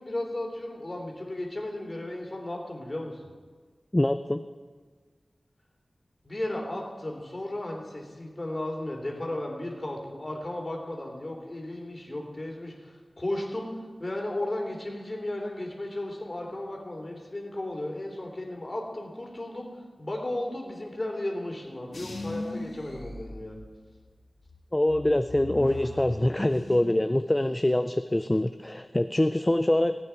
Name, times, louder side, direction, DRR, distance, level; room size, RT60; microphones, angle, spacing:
voice 1, 0.0-3.2 6.2-13.7 14.0-19.7 20.0-23.6, left 1 dB, 40° left, 1 dB, 3.0 m, -34 dB
voice 2, 3.9-4.4 24.7-30.0, left 1 dB, 20° left, 10 dB, 0.4 m, -24 dB
sound 1, 21.9-24.0 24.4-27.0 27.3-27.9, left 2 dB, 65° left, 2.6 m, -40 dB
19.0 x 9.0 x 4.5 m, 1.5 s
wide cardioid pair, 50°, 0 cm